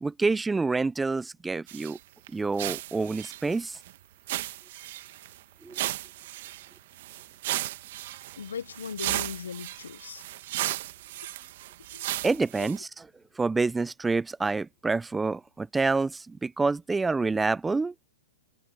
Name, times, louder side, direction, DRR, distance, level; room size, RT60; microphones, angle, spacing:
voice 1, 0.0-2.0 2.3-3.8 5.6-5.8 12.2-12.9 13.4-17.9, right 3 dB, 10° right, 0.6 m, -27 dB
sound 1, 1.7-2.0 2.3-2.4 2.6-3.9 4.3-5.4 5.7-12.8, right 15 dB, 55° right, 1.3 m, -35 dB
voice 2, 8.4-10.2 11.9-12.1 12.6-12.7, left 7 dB, 85° left, 0.8 m, -38 dB
hypercardioid pair, 130°, 0 cm